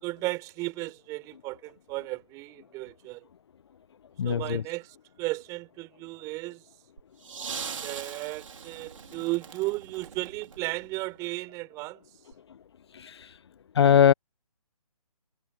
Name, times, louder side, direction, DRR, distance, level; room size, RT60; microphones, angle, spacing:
voice 1, 0.0-3.2 4.2-4.9 5.2-6.6 7.8-12.0, right 22 dB, 20° right, 5.8 m, -34 dB
voice 2, 4.2-4.6 12.9-13.3 13.7-14.1, left 8 dB, 45° left, 1.1 m, -21 dB
sound 1, 7.0-11.2 12.3-12.4, right 6 dB, 55° right, 3.8 m, -41 dB
figure-of-eight pair, 155°, 19 cm